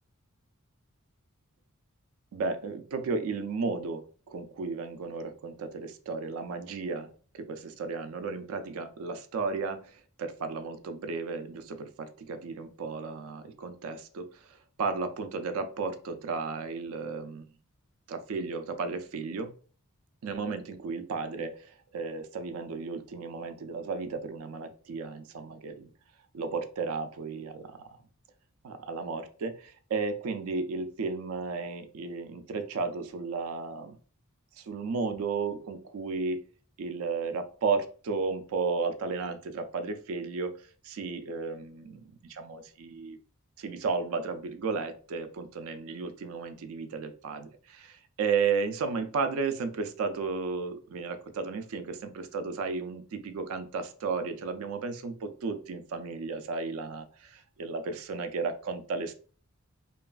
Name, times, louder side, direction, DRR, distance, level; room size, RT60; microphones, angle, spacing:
voice 1, 2.3-7.1 7.3-14.3 14.8-17.4 18.1-19.5 20.2-25.9 26.3-28.0 28.6-34.0 34.6-36.4 36.8-43.2 43.6-59.1, right 4 dB, 70° right, 9 dB, 0.4 m, -34 dB
2.9 x 2.3 x 2.3 m, 0.41 s
head